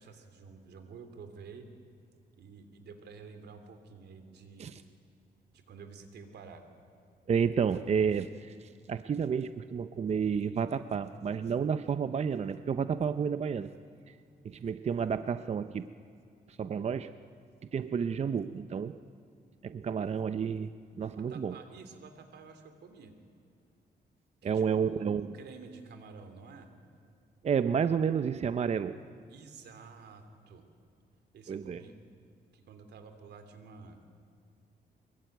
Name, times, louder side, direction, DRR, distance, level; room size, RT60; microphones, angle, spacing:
voice 1, 0.0-1.7 2.4-4.7 5.5-6.6 21.3-23.1 24.4-26.7 29.3-30.6 31.3-31.9 32.5-34.0, right 5 dB, 80° right, 8 dB, 3.1 m, -50 dB
voice 2, 7.3-13.7 14.1-14.2 14.4-15.9 16.5-17.1 17.7-19.0 19.6-20.7 21.0-21.6 24.4-25.3 27.4-29.0 31.5-31.8, right 6 dB, 40° right, 11 dB, 0.6 m, -30 dB
24.0 x 22.0 x 9.3 m, 2.4 s
cardioid pair, 120°, 17 cm